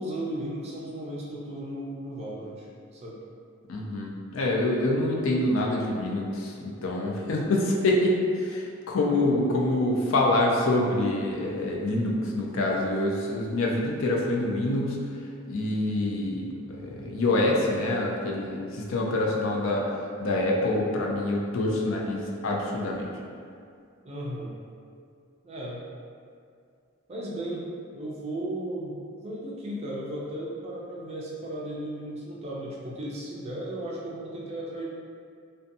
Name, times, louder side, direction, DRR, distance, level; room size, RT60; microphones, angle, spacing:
voice 1, 0.0-3.2 24.0-24.5 25.4-25.8 27.1-27.7 27.9-34.8, right 1 dB, 30° right, -5 dB, 0.4 m, -35 dB
voice 2, 3.7-15.1 15.5-19.9 20.2-23.1, left 1 dB, 70° left, -2 dB, 0.4 m, -26 dB
2.6 x 2.2 x 2.5 m, 2.3 s
head